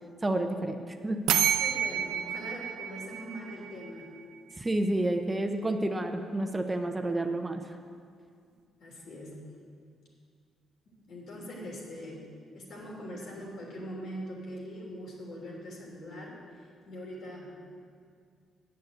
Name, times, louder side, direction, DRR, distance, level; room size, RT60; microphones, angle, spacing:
voice 1, 0.2-1.2 4.6-7.6, right 1 dB, 20° right, 5 dB, 0.7 m, -30 dB
sound 1, 1.3-4.0, right 9 dB, 85° right, 0.4 m, -29 dB
voice 2, 1.6-4.1 8.8-9.4 10.9-12.3 12.5-16.3 16.9-17.5, equal, 65° left, -3 dB, 3.0 m, -42 dB
8.3 x 6.6 x 8.0 m, 2.2 s
cardioid pair, 90°, 0 cm